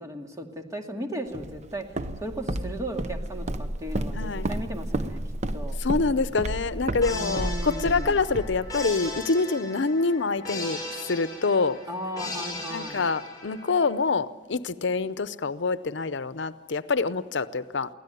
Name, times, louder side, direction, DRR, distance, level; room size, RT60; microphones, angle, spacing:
voice 1, 0.0-5.2 5.5-5.8 7.1-8.2 11.9-13.1, equal, 20° right, 2 dB, 2.4 m, -36 dB
Walk footsteps, 1.3-9.2, right 1 dB, 40° right, 0.9 m, -32 dB
voice 2, 4.2-4.5 5.8-11.8 12.7-17.9, left 4 dB, 75° left, 14 dB, 0.7 m, -26 dB
sound 1, 7.0-13.9, left 2 dB, 20° left, 7.1 m, -38 dB
24.0 x 17.0 x 9.3 m, 1.3 s
head